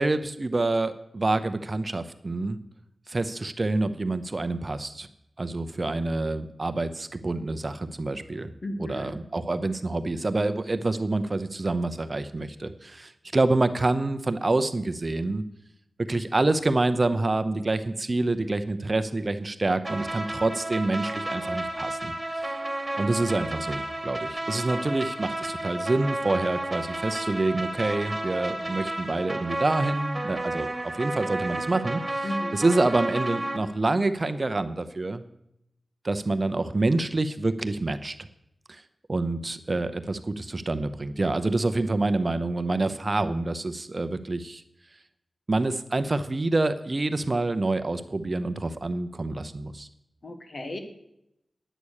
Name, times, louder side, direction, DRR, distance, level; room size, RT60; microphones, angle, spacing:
voice 1, 0.0-2.6 3.1-5.1 5.4-8.5 8.8-15.4 16.1-22.5 22.9-35.2 36.0-38.2 38.7-38.8 39.1-44.6 45.5-49.9, right 2 dB, 40° right, 11 dB, 0.7 m, -27 dB
voice 2, 8.6-9.1 32.2-32.6 50.2-50.8, left 1 dB, 50° left, 6 dB, 1.7 m, -34 dB
sound 1, 19.8-33.6, right 1 dB, 20° right, 2.1 m, -32 dB
10.0 x 8.5 x 6.5 m, 0.79 s
wide cardioid pair, 70°, 0 cm